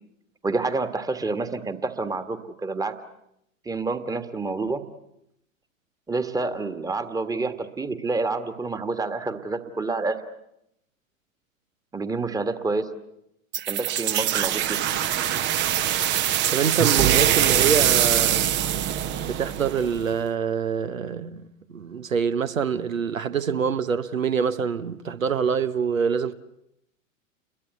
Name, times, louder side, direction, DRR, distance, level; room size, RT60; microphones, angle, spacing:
voice 1, 0.4-2.9 3.7-4.8 6.1-10.2 11.9-12.9 13.7-14.8, right 3 dB, 10° right, 1.6 m, -28 dB
sound 1, 13.5-20.1, right 11 dB, 25° right, 0.9 m, -23 dB
voice 2, 16.5-18.5 19.2-21.4 21.7-26.3, right 6 dB, 75° right, 1.1 m, -25 dB
30.0 x 22.5 x 8.1 m
figure-of-eight pair, 95°, 40 cm